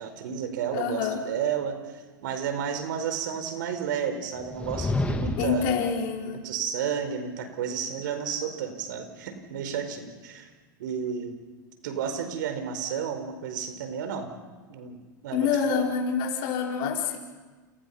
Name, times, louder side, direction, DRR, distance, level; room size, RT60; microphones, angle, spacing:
voice 1, 0.0-5.7 6.3-10.5 10.8-11.4 11.8-14.3 14.7-15.0 15.2-15.8, right 7 dB, 75° right, 8 dB, 4.7 m, -32 dB
voice 2, 0.7-1.2 5.4-6.4 15.3-17.2, left 6 dB, 60° left, -1 dB, 5.0 m, -27 dB
sound 1, 4.4-5.7, left 2 dB, 10° left, 2.7 m, -29 dB
29.5 x 29.5 x 5.8 m, 1.3 s
hypercardioid pair, 95°, 11 cm